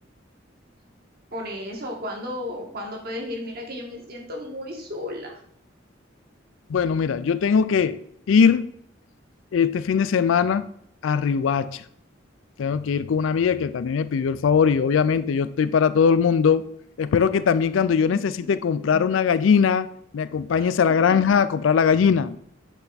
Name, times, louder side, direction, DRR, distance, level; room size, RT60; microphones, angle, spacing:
voice 1, 1.3-5.4 18.1-18.5 18.9-19.0 20.5-20.6 21.1-21.2, left 1 dB, 50° right, 1.4 m, -34 dB
voice 2, 6.7-8.7 9.5-10.7 11.0-11.8 12.6-16.7 17.0-19.9 20.1-22.4, left 6 dB, 90° left, 0.4 m, -20 dB
8.2 x 3.4 x 4.0 m
head